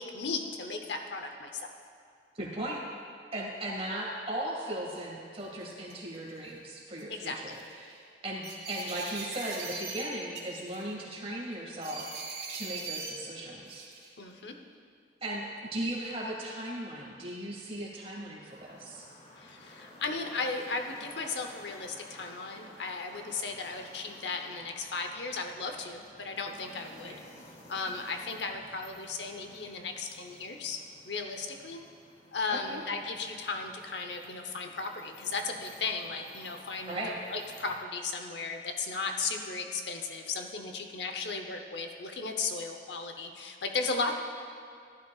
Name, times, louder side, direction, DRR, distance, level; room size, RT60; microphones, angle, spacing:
voice 1, 0.0-1.7 7.1-7.6 14.2-14.5 19.4-27.2 27.7-31.8 32.3-44.2, left 4 dB, 75° left, 4 dB, 0.9 m, -36 dB
voice 2, 2.3-2.8 3.3-13.9 15.2-19.1 26.7-27.2 32.7-32.8 36.9-37.1, right 1 dB, 35° right, -3 dB, 2.0 m, -37 dB
sound 1, 4.9-5.0 5.6-6.2 7.0-7.2 7.5-7.7 8.4-10.0 10.3-10.9 11.8-13.1 13.7-14.1, right 4 dB, 70° right, 2.9 m, -40 dB
sound 2, 18.5-37.8, left 1 dB, 45° left, 2.2 m, -54 dB
15.0 x 11.5 x 2.4 m, 2.3 s
head